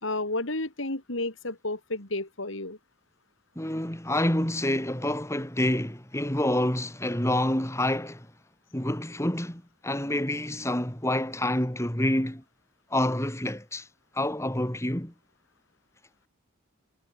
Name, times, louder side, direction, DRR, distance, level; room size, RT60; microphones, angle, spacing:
voice 1, 0.0-2.8, left 2 dB, 70° left, 3.6 m, -31 dB
voice 2, 3.5-8.3 8.7-12.4 12.9-13.9 14.1-15.1, left 1 dB, 15° left, 3.2 m, -27 dB
head